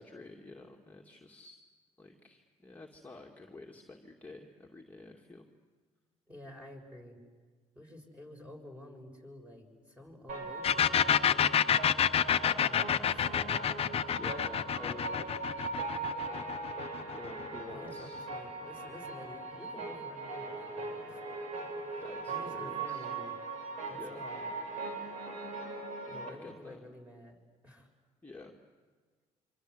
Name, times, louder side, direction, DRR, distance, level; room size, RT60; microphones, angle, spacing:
voice 1, 0.0-1.6 2.0-5.5 14.2-15.5 16.8-18.2 22.0-23.1 23.9-24.3 26.1-26.8 28.2-28.6, left 3 dB, 10° left, -1 dB, 2.4 m, -49 dB
voice 2, 6.3-7.2 7.7-11.7 12.4-13.6 17.7-21.3 21.8-23.3 23.9-24.5 26.1-27.9, left 1 dB, 10° right, 2 dB, 6.8 m, -51 dB
sound 1, 10.3-26.3, right 3 dB, 65° right, 6.2 m, -40 dB
sound 2, 10.6-18.2, left 9 dB, 45° left, 0.9 m, -28 dB
26.5 x 25.5 x 8.1 m, 1.5 s
supercardioid pair, 75°, 13 cm